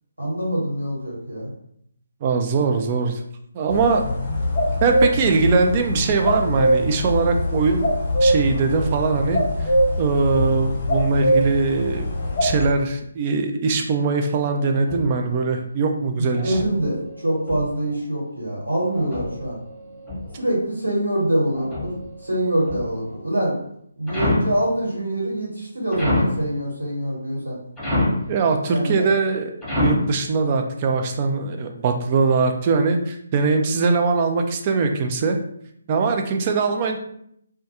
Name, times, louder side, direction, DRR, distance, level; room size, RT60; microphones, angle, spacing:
voice 1, 0.2-1.5 16.2-19.6 20.4-23.5 24.0-27.6 28.7-29.0, right 1 dB, 90° right, -4 dB, 1.3 m, -24 dB
voice 2, 2.2-3.2 3.5-4.0 4.8-7.9 8.2-9.7 10.0-12.1 12.4-16.6 28.3-29.5 29.8-35.4 35.9-37.0, right 4 dB, 30° right, 4 dB, 0.3 m, -21 dB
sound 1, 3.7-12.7, equal, 35° left, 0.5 m, -22 dB
sound 2, 14.4-15.4 16.3-18.0 18.9-20.6 21.5-23.2 24.1-24.6 25.9-26.5 27.8-28.3 29.6-30.2, left 1 dB, 5° left, 0.9 m, -27 dB
2.3 x 2.2 x 2.8 m, 0.70 s
figure-of-eight pair, 145°, 0 cm